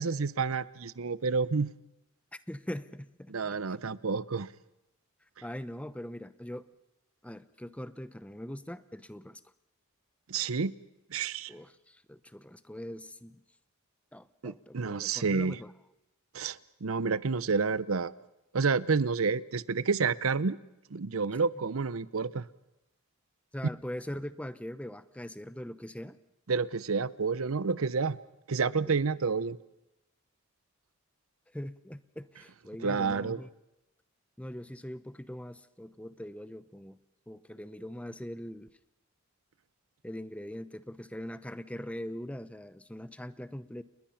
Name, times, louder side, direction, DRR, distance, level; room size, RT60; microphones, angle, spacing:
voice 1, 0.0-1.7 3.3-4.5 10.3-10.7 11.1-11.5 14.4-15.6 16.3-18.1 18.5-20.6 20.9-22.5 26.5-28.2 28.5-29.6 32.8-33.4, right 4 dB, 85° right, 18 dB, 0.7 m, -29 dB
voice 2, 2.5-3.6 5.4-6.7 7.2-9.4 11.5-13.4 14.1-15.7 23.5-26.2 28.8-28.9 31.5-33.5 34.4-37.0 37.3-38.7 40.0-43.8, equal, 5° left, 14 dB, 0.7 m, -41 dB
30.0 x 20.5 x 5.8 m, 0.88 s
head